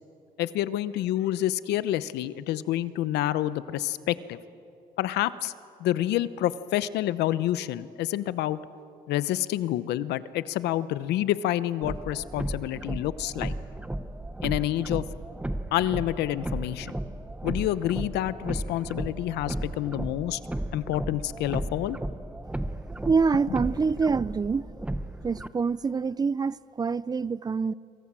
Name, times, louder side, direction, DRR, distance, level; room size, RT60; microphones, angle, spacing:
voice 1, 0.4-4.4 5.0-5.5 5.8-8.6 9.1-13.5 14.4-15.0 15.7-17.0 17.4-20.4 20.7-22.0, left 13 dB, 80° left, 0.9 m, -28 dB
sound 1, 11.8-25.5, right 1 dB, 5° right, 1.0 m, -35 dB
voice 2, 23.1-24.6 25.2-27.7, right 5 dB, 25° right, 0.5 m, -26 dB
27.0 x 23.5 x 7.6 m
cardioid pair, 110°, 17 cm